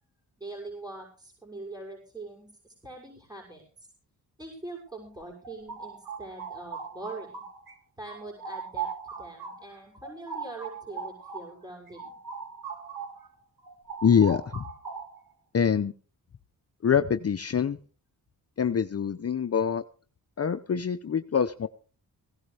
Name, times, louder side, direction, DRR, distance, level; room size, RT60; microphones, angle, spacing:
voice 1, 0.4-3.9 4.4-7.4 8.0-12.1, right 2 dB, 10° right, 0 dB, 6.3 m, -43 dB
sound 1, 5.2-7.7 8.1-13.3 13.6-15.3, right 6 dB, 70° right, 3.3 m, -39 dB
voice 2, 14.0-14.7 15.5-15.9 16.8-17.8 18.6-19.8 20.4-21.7, left 7 dB, 40° left, 9 dB, 0.8 m, -25 dB
18.0 x 16.5 x 3.4 m, 0.40 s
cardioid pair, 90°, 37 cm